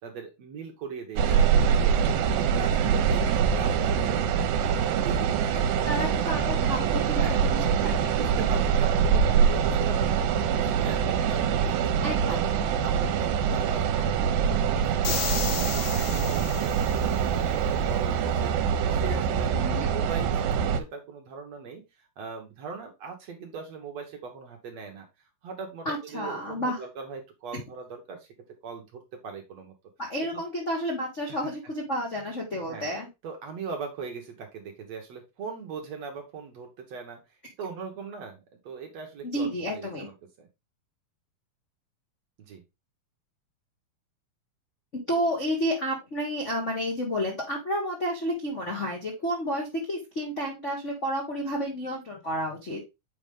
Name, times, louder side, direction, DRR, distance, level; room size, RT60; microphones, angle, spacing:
voice 1, 0.0-5.9 6.2-6.3 7.0-7.4 8.1-10.2 10.5-12.0 12.3-12.6 12.8-18.6 18.9-25.1 25.4-28.3 28.6-29.7 30.2-30.4 31.3-31.4 32.7-32.9 33.2-37.2 37.6-40.5 42.4-42.6, right 5 dB, 60° right, 2 dB, 1.9 m, -40 dB
sound 1, 1.2-20.8, right 7 dB, 75° right, 2.4 m, -24 dB
voice 2, 5.9-8.5 12.0-12.4 19.6-19.9 25.8-26.8 30.0-33.1 39.2-40.1 45.1-52.8, equal, 60° left, -2 dB, 0.7 m, -31 dB
sound 2, 15.0-17.3, left 7 dB, 90° left, 3.1 m, -34 dB
7.5 x 4.9 x 3.6 m, 0.23 s
omnidirectional pair, 4.2 m